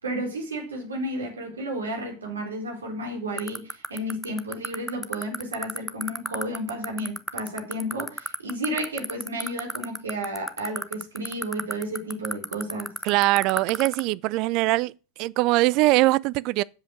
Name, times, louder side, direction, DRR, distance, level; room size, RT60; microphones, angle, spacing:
voice 1, 0.0-13.0, right 1 dB, 80° right, 3.8 m, -32 dB
sound 1, 3.4-14.0, right 1 dB, ahead, 0.8 m, -28 dB
voice 2, 13.0-14.9 15.2-16.6, right 19 dB, 50° right, 0.4 m, -22 dB
8.3 x 7.7 x 6.3 m
figure-of-eight pair, 90°, 0 cm